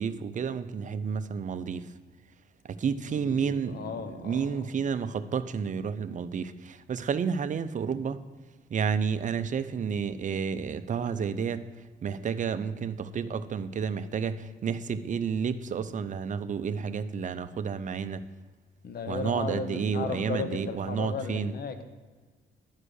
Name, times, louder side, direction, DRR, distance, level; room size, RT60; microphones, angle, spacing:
voice 1, 0.0-1.9 2.6-8.2 8.7-11.8 12.0-18.2 19.1-21.5, right 6 dB, 40° right, 11 dB, 0.5 m, -31 dB
voice 2, 3.1-4.7 18.8-21.8, left 5 dB, 50° left, 9 dB, 0.9 m, -36 dB
11.0 x 5.0 x 6.4 m, 1.4 s
cardioid pair, 90°, 20 cm